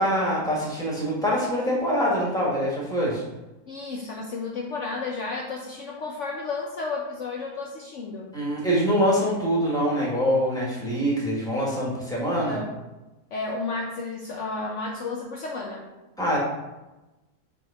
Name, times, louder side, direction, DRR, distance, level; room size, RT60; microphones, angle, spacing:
voice 1, 0.0-3.2 8.3-12.6 16.2-16.4, equal, ahead, -5 dB, 1.6 m, -24 dB
voice 2, 3.7-8.4 12.4-12.7 13.3-15.9, left 3 dB, 60° left, -1 dB, 0.9 m, -32 dB
5.8 x 3.7 x 4.9 m, 1.1 s
omnidirectional pair, 1.6 m